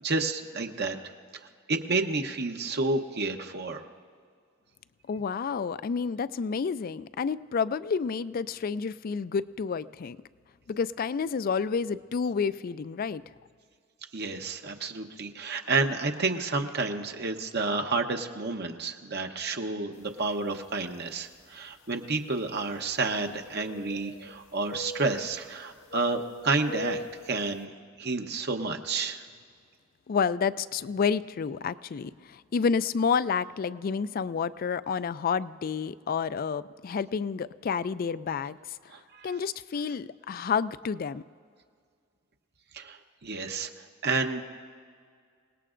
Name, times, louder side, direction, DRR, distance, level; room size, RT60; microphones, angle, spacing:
voice 1, 0.0-1.0 1.7-3.9 14.1-27.7 28.0-29.2 38.9-39.4 42.7-43.7 44.0-44.4, right 3 dB, 55° right, 5 dB, 0.9 m, -30 dB
voice 2, 5.1-10.2 10.7-13.2 30.1-38.6 39.2-41.2, left 6 dB, 45° left, 16 dB, 0.3 m, -29 dB
sound 1, 20.2-20.4 21.2-21.3 23.1-24.4 24.7-25.5 25.9-27.3, left 2 dB, 70° left, 0.9 m, -39 dB
28.0 x 18.5 x 2.5 m, 2.1 s
head